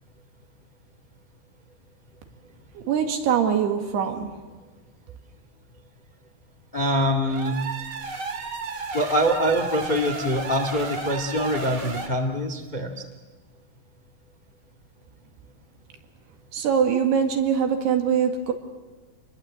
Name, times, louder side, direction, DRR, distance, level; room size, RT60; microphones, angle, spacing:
voice 1, 2.8-4.3 16.5-18.5, right 7 dB, 70° right, 4 dB, 4.0 m, -23 dB
voice 2, 6.7-7.6 8.9-13.0, equal, 55° left, 4 dB, 0.5 m, -24 dB
sound 1, 7.2-12.1, right 3 dB, 40° right, 1.7 m, -33 dB
28.0 x 21.5 x 7.9 m, 1.3 s
omnidirectional pair, 4.9 m